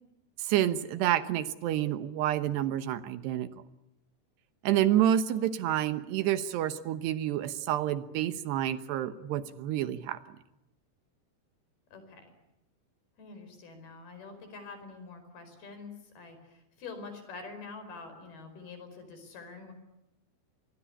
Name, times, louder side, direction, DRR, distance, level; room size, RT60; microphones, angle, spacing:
voice 1, 0.4-3.5 4.6-10.2, right 11 dB, 75° right, 12 dB, 3.2 m, -28 dB
voice 2, 11.9-12.3 13.2-19.7, left 4 dB, 60° left, 9 dB, 6.8 m, -46 dB
26.0 x 22.0 x 9.9 m, 0.86 s
omnidirectional pair, 5.0 m